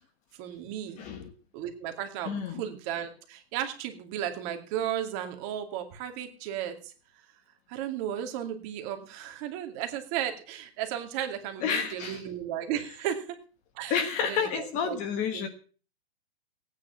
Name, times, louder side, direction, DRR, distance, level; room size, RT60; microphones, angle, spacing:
voice 1, 0.4-1.1 1.5-6.9 7.7-13.4 13.8-15.0 15.3-15.5, right 10 dB, 30° right, 6 dB, 2.4 m, -34 dB
voice 2, 1.0-1.3 2.3-2.6 11.6-12.2 13.9-15.5, left 7 dB, 25° left, 8 dB, 1.3 m, -30 dB
17.0 x 9.3 x 5.8 m, 0.39 s
hypercardioid pair, 150°, 31 cm